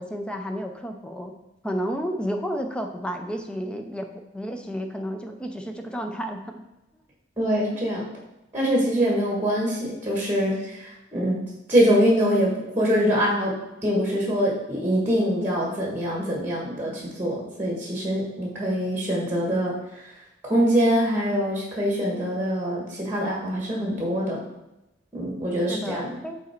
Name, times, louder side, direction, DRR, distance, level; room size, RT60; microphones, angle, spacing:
voice 1, 0.0-1.3 1.6-4.1 4.3-6.6 25.7-26.4, equal, 5° left, 4 dB, 0.5 m, -31 dB
voice 2, 7.4-8.0 8.5-11.4 11.7-13.5 13.8-20.1 20.4-24.4 25.1-26.1, equal, 10° right, -3 dB, 1.4 m, -24 dB
6.2 x 4.1 x 4.4 m, 0.93 s
head